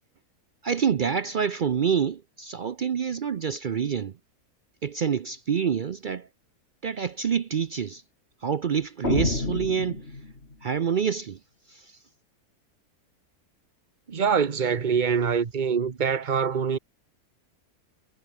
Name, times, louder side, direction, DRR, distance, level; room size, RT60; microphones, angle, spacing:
voice 1, 0.6-4.1 4.8-6.3 6.8-8.0 8.4-10.0 10.6-11.4 11.7-11.9, right 7 dB, 65° right, 0.4 m, -27 dB
sound 1, 9.0-10.7, left 2 dB, 40° left, 3.7 m, -28 dB
voice 2, 14.1-16.8, right 6 dB, 35° right, 1.0 m, -24 dB
omnidirectional pair, 1.6 m